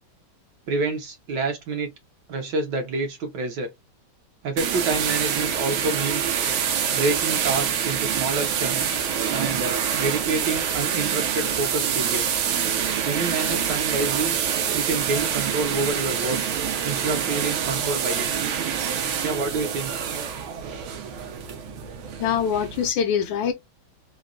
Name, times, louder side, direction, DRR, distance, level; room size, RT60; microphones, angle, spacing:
voice 1, 0.7-1.9 2.3-3.7 4.4-6.3 6.9-8.9 9.3-12.4 13.0-14.4 14.7-16.4 16.8-18.3 19.2-19.9, right 3 dB, 65° right, 1.3 m, -28 dB
sound 1, 4.6-22.9, right 8 dB, 85° right, 1.6 m, -26 dB
voice 2, 22.2-23.5, left 8 dB, 75° left, 1.3 m, -23 dB
3.9 x 2.2 x 2.4 m
omnidirectional pair, 2.2 m